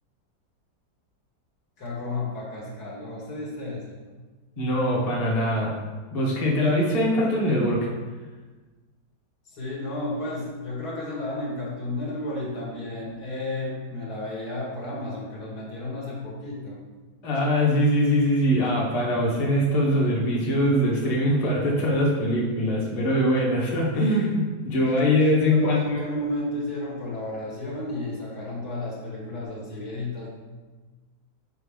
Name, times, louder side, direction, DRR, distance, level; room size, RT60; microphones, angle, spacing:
voice 1, 1.8-4.0 9.5-16.8 25.5-30.3, left 2 dB, 70° left, -4 dB, 2.0 m, -32 dB
voice 2, 4.6-5.8 6.1-7.9 17.2-26.0, equal, 25° left, -4 dB, 0.9 m, -22 dB
6.6 x 4.3 x 3.6 m, 1.3 s
omnidirectional pair, 1.8 m